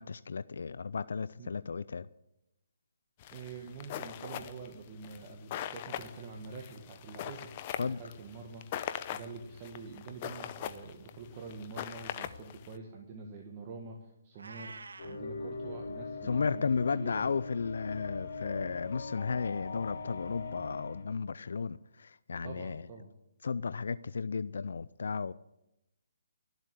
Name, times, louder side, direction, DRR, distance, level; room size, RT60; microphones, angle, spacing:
voice 1, 0.0-2.1 7.8-8.0 16.2-22.8 23.4-25.3, left 5 dB, 70° left, 0.4 m, -34 dB
sound 1, 3.2-12.8, left 11 dB, 30° left, 0.7 m, -41 dB
voice 2, 3.3-7.5 7.8-8.6 9.1-14.7 15.0-17.3 22.4-23.1, right 4 dB, 30° right, 1.6 m, -46 dB
Meow, 14.3-15.2, right 4 dB, 85° right, 1.4 m, -47 dB
sound 2, 15.0-21.0, left 3 dB, 50° left, 4.3 m, -41 dB
13.0 x 7.9 x 9.8 m
hypercardioid pair, 160°, 0 cm